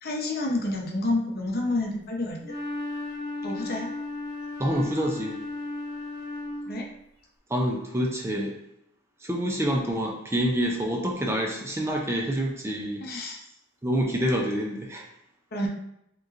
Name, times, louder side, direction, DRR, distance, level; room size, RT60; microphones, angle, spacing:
voice 1, 0.0-2.4 3.4-3.9 6.7-6.9 13.0-13.4 15.5-15.7, left 2 dB, 50° left, 0 dB, 0.8 m, -29 dB
Wind instrument woodwind instrument, 2.4-6.9, left 2 dB, 45° right, 1.4 m, -35 dB
voice 2, 4.6-5.4 7.5-8.6 9.2-13.1 13.8-15.0, equal, 15° right, 0 dB, 0.5 m, -27 dB
5.1 x 3.0 x 2.5 m, 0.78 s
head